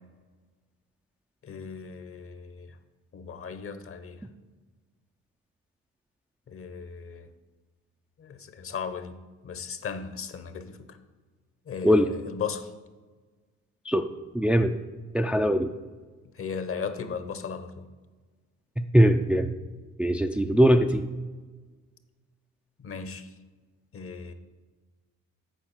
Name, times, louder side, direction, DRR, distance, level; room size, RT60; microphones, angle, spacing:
voice 1, 1.4-2.8 3.1-4.3 6.5-7.3 8.2-9.2 9.4-11.0 11.7-12.7 16.3-17.9 22.8-23.3 23.9-24.3, left 6 dB, 45° left, 10 dB, 0.9 m, -36 dB
voice 2, 14.3-14.8 15.1-15.7 18.8-19.5 20.0-21.1, equal, 5° right, 5 dB, 0.4 m, -21 dB
9.1 x 4.6 x 6.4 m, 1.3 s
cardioid pair, 90°, 30 cm